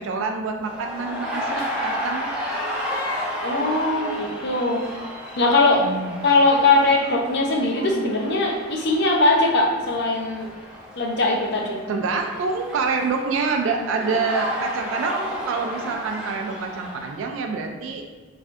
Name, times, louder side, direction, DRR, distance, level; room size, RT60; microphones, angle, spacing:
voice 1, 0.0-2.3 5.8-6.2 11.9-18.0, right 4 dB, 70° right, 3 dB, 0.3 m, -26 dB
sound 1, 0.6-17.2, equal, 5° right, 0.5 m, -32 dB
voice 2, 3.4-4.8 5.4-5.9 6.2-10.5 11.0-11.8, left 2 dB, 55° left, 0 dB, 0.5 m, -20 dB
3.1 x 2.5 x 2.5 m, 1.3 s
head